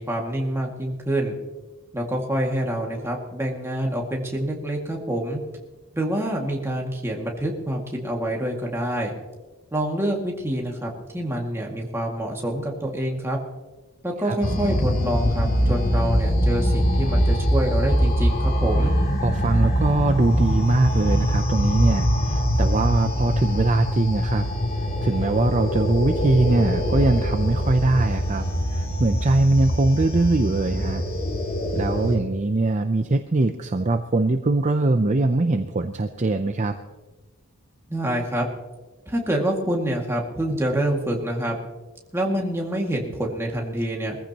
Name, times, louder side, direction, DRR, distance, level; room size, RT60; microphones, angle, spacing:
voice 1, 0.0-1.3 1.9-5.4 5.9-9.1 9.7-13.4 14.0-18.9 37.9-38.5 39.1-41.6 42.1-44.2, right 1 dB, 10° right, -1 dB, 2.1 m, -26 dB
sound 1, 14.4-32.2, equal, 40° left, 2.3 m, -23 dB
voice 2, 19.2-24.5 25.0-28.5 28.7-31.0 31.7-36.8, right 2 dB, 35° right, 7 dB, 0.5 m, -22 dB
22.0 x 15.0 x 2.9 m, 1.2 s
head